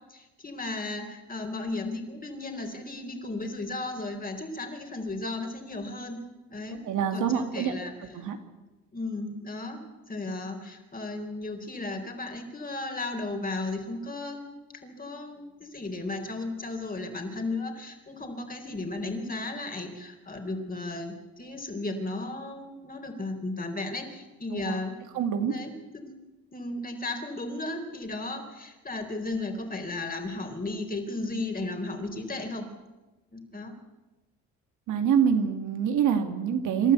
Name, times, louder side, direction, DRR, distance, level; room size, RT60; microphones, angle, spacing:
voice 1, 0.1-6.2 6.5-6.8 7.1-8.1 8.9-9.8 10.1-14.6 14.8-25.0 25.5-26.1 26.5-32.7 33.3-33.7, left 2 dB, 30° left, 4 dB, 4.4 m, -35 dB
voice 2, 6.8-7.8 8.1-8.4 24.5-24.8 25.1-25.5 34.9-36.9, right 8 dB, 85° right, 6 dB, 2.4 m, -25 dB
27.5 x 12.5 x 8.4 m, 1.1 s
cardioid pair, 90°, 30 cm